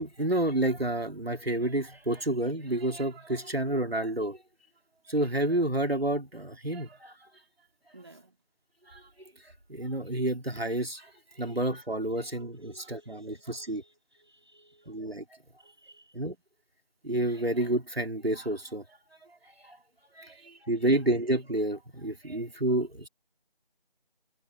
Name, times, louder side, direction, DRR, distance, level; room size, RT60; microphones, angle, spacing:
voice 1, 0.0-4.4 5.1-7.1 8.9-9.0 9.7-11.1 11.4-13.8 14.9-15.2 16.1-16.4 17.0-18.8 19.6-19.8 20.1-23.1, right 1 dB, 80° right, 3.2 m, -29 dB
voice 2, 7.9-8.4 12.2-14.9 15.6-16.1 20.3-20.5, right 2 dB, 25° right, 3.5 m, -58 dB
figure-of-eight pair, 175°, 30 cm